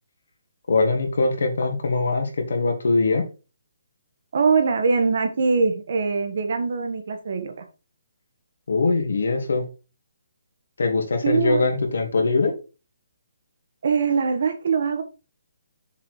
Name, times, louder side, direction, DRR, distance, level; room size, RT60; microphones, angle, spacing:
voice 1, 0.7-3.2 8.7-9.6 10.8-12.5, left 3 dB, 70° left, 3 dB, 2.4 m, -22 dB
voice 2, 4.3-7.6 11.2-11.7 13.8-15.0, right 5 dB, 50° right, 7 dB, 1.4 m, -22 dB
6.8 x 4.9 x 4.7 m, 0.31 s
hypercardioid pair, 175°, 0 cm